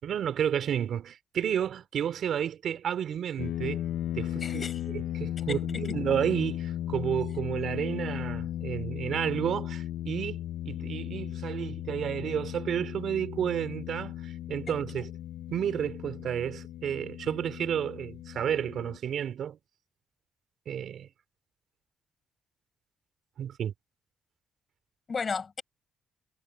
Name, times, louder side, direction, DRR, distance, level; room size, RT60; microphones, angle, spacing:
voice 1, 0.0-3.8 4.1-10.4 10.7-15.1 15.5-19.6 20.7-21.1 23.4-23.7, right 9 dB, 65° right, 3.7 m, -31 dB
sound 1, 3.4-19.0, left 12 dB, 80° left, 0.5 m, -36 dB
voice 2, 4.4-4.8 5.5-6.0 14.7-15.0 25.1-25.6, left 5 dB, 40° left, 5.8 m, -35 dB
cardioid pair, 80°, 0 cm